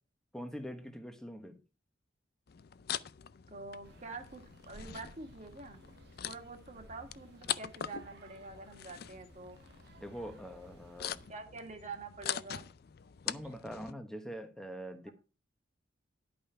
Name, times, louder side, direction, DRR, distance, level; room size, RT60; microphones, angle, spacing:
voice 1, 0.3-1.6 10.0-11.2 13.2-15.1, equal, 5° left, 1.2 m, -44 dB
sound 1, 2.5-13.9, left 10 dB, 50° left, 0.4 m, -43 dB
voice 2, 3.5-5.8 6.2-9.6 11.3-12.6 13.3-13.4, right 3 dB, 35° right, 1.8 m, -46 dB
sound 2, 3.8-11.3, right 2 dB, 55° right, 1.4 m, -58 dB
11.0 x 5.3 x 5.6 m
head